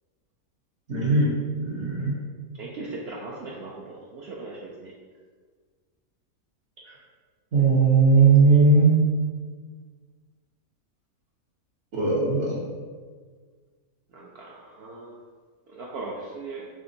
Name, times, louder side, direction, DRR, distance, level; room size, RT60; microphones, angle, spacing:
voice 1, 0.9-1.3 1.6-2.2 6.9-7.0 7.5-9.0 11.9-12.6, right 4 dB, 55° right, -7 dB, 1.0 m, -19 dB
voice 2, 2.6-4.9 14.1-15.2 15.7-16.7, right 3 dB, 75° right, -4 dB, 0.5 m, -38 dB
5.0 x 3.3 x 2.7 m, 1.5 s
omnidirectional pair, 1.6 m